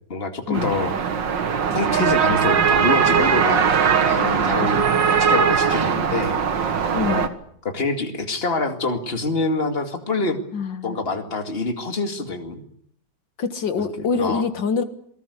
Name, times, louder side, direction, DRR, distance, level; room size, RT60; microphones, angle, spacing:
voice 1, 0.1-0.9 1.7-3.6 4.0-4.8 5.2-6.4 7.1-7.3 7.6-10.4 10.8-12.6 14.0-14.4, left 3 dB, 30° left, 5 dB, 2.6 m, -26 dB
sound 1, 0.5-7.3, right 6 dB, 85° right, 2.3 m, -20 dB
voice 2, 6.9-7.3 10.5-11.0 13.4-14.8, left 5 dB, 85° left, 9 dB, 2.3 m, -25 dB
27.5 x 19.5 x 8.3 m, 0.67 s
omnidirectional pair, 1.9 m